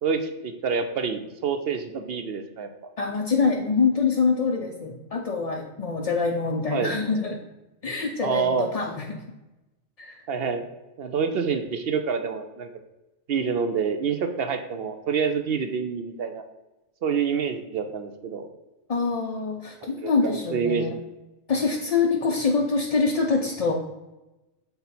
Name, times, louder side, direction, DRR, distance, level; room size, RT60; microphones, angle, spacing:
voice 1, 0.0-2.7 6.7-6.9 8.2-8.7 10.3-10.6 11.0-12.7 13.3-16.4 17.0-18.5 20.0-21.0, right 6 dB, 60° right, 7 dB, 0.7 m, -27 dB
voice 2, 3.0-7.4 7.8-9.2 10.0-10.2 18.9-20.9 21.5-23.7, left 4 dB, 50° left, 1 dB, 0.4 m, -25 dB
6.8 x 4.0 x 4.2 m, 1.0 s
omnidirectional pair, 1.2 m